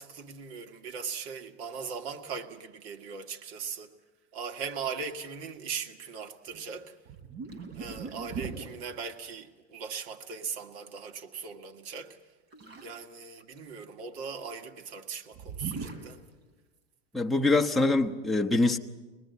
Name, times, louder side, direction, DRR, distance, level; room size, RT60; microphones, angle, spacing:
voice 1, 0.0-3.9 4.3-6.9 7.7-12.2 12.8-16.2, right 6 dB, 70° right, 2.1 m, -39 dB
sound 1, 6.5-6.7 7.1-8.7 12.5-13.0 13.4-14.0 15.3-16.1, right 5 dB, 45° right, 4.5 m, -39 dB
voice 2, 17.1-18.8, left 2 dB, ahead, 0.9 m, -24 dB
24.0 x 19.5 x 9.5 m
supercardioid pair, 125°, 33 cm